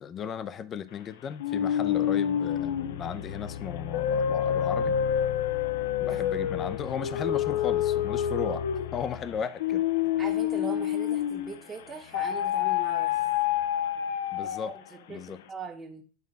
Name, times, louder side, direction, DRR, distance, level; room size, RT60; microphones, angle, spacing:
voice 1, 0.0-5.0 6.0-8.7 8.9-9.8 14.3-14.7 15.1-15.4, left 7 dB, 30° left, 0.6 m, -35 dB
sound 1, 1.4-11.6 12.1-14.9, left 10 dB, 85° left, 0.6 m, -28 dB
voice 2, 6.0-6.4 10.2-13.3 14.4-16.0, right 4 dB, 20° right, 1.2 m, -41 dB
9.4 x 3.7 x 5.3 m
supercardioid pair, 135°, 0 cm